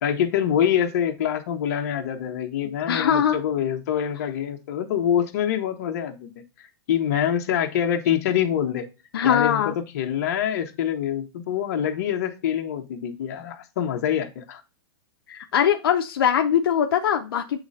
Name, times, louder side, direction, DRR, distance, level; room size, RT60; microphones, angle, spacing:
voice 1, 0.0-6.3 6.9-8.9 9.2-14.6, left 9 dB, 40° left, 3 dB, 1.0 m, -25 dB
voice 2, 2.9-3.4 9.1-9.8 15.3-17.6, left 9 dB, 65° left, 5 dB, 0.6 m, -21 dB
7.9 x 3.2 x 4.0 m, 0.29 s
hypercardioid pair, 175°, 13 cm